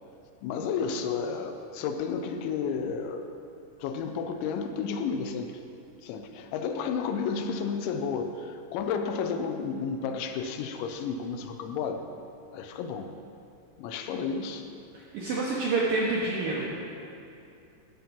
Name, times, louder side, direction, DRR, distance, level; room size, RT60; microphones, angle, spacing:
voice 1, 0.4-3.3 3.8-5.6 6.0-12.0 12.5-13.1 13.8-14.6, left 6 dB, 80° left, 6 dB, 2.9 m, -32 dB
voice 2, 14.9-16.7, right 3 dB, 75° right, -4 dB, 2.1 m, -28 dB
14.0 x 7.3 x 5.3 m, 2.6 s
omnidirectional pair, 5.4 m